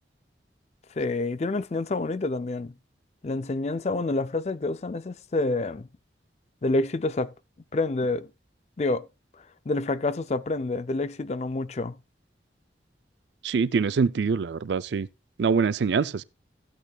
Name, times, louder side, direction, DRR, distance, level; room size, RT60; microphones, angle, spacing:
voice 1, 1.0-2.7 3.2-5.9 6.6-7.3 7.7-8.3 8.8-9.1 9.7-12.0, left 2 dB, 40° left, 0.4 m, -28 dB
voice 2, 13.4-15.1 15.4-16.2, right 5 dB, 85° right, 0.4 m, -24 dB
14.5 x 8.2 x 2.3 m
head